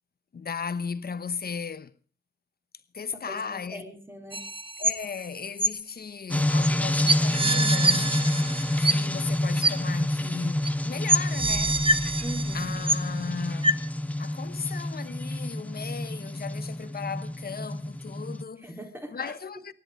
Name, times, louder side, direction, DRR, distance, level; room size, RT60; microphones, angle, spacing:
voice 1, 0.3-1.9 2.9-3.8 4.8-8.1 8.8-11.8 12.5-13.8 14.2-18.7 19.1-19.7, left 6 dB, 55° left, 1.0 m, -36 dB
voice 2, 3.7-4.5 12.2-12.8 18.6-19.4, right 1 dB, 10° right, 4.3 m, -40 dB
sound 1, 4.3-5.2 5.6-5.7 6.6-6.7 7.1-9.3 9.6-9.7 10.6-10.7 11.1-13.2 13.6-13.7, right 2 dB, 30° right, 1.0 m, -25 dB
sound 2, 6.3-18.4, left 1 dB, 10° left, 0.8 m, -28 dB
23.5 x 11.0 x 5.2 m
wide cardioid pair, 100°, 19 cm